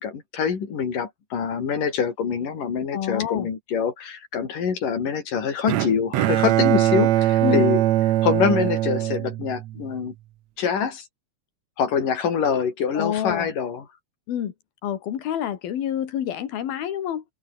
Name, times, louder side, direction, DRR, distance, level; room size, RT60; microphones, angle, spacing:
voice 1, 0.0-7.8 8.2-10.1 10.6-11.1 11.8-13.8, left 6 dB, 65° left, 5.4 m, -25 dB
voice 2, 2.9-3.5 7.4-7.7 12.9-13.5 14.3-14.5 14.8-17.2, left 10 dB, 90° left, 4.0 m, -27 dB
Bowed string instrument, 5.7-9.9, right 14 dB, 75° right, 1.7 m, -21 dB
omnidirectional pair, 4.2 m